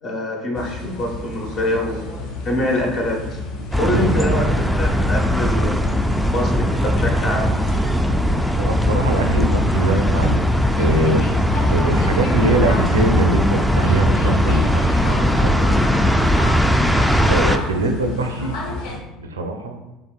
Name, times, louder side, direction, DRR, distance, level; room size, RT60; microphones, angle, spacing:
voice 1, 0.0-3.4 3.8-5.9 6.1-7.5, left 1 dB, 45° left, 1 dB, 1.0 m, -25 dB
sound 1, 0.5-19.0, left 2 dB, 65° left, 0.7 m, -31 dB
sound 2, 3.7-17.6, equal, ahead, 0.3 m, -19 dB
voice 2, 3.9-4.6 8.6-10.4 10.8-16.1 17.3-18.6 19.2-19.8, right 2 dB, 85° right, 5 dB, 0.4 m, -23 dB
4.1 x 3.5 x 2.3 m, 1.0 s
hypercardioid pair, 65°, 0 cm